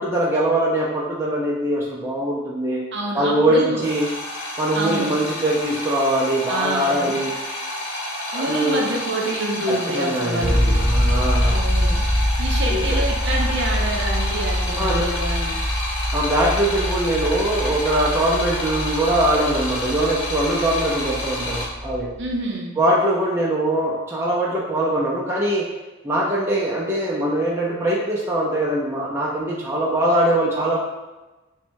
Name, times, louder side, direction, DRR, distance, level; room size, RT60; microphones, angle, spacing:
voice 1, 0.0-2.9 3.1-4.1 4.6-7.3 8.3-8.8 9.7-11.6 12.7-13.0 14.8-15.0 16.1-22.1 22.8-25.7 26.0-30.8, right 1 dB, 10° right, -5 dB, 0.5 m, -22 dB
voice 2, 2.9-3.9 4.7-5.1 6.5-7.2 8.3-10.8 11.4-12.1 12.4-15.6 22.2-22.7, right 1 dB, 60° right, 0 dB, 0.6 m, -27 dB
sound 1, 3.8-21.7, left 1 dB, 65° left, 1.2 m, -30 dB
sound 2, 10.4-22.3, equal, 45° left, 0.9 m, -24 dB
5.8 x 2.2 x 2.6 m, 1.1 s
head